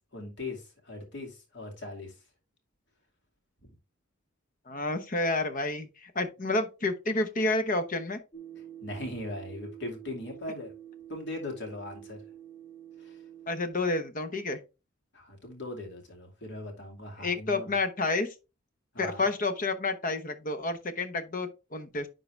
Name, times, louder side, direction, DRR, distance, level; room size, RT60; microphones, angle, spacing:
voice 1, 0.1-2.1 3.6-3.7 8.8-10.7 11.1-12.2 13.0-13.1 15.1-17.7 18.9-19.2, left 2 dB, 60° left, 2.5 m, -39 dB
voice 2, 4.7-8.2 13.5-14.6 17.2-18.3 19.0-22.1, left 2 dB, 45° left, 1.0 m, -30 dB
sound 1, 8.3-13.7, right 10 dB, 15° left, 0.8 m, -47 dB
10.5 x 3.8 x 3.4 m
head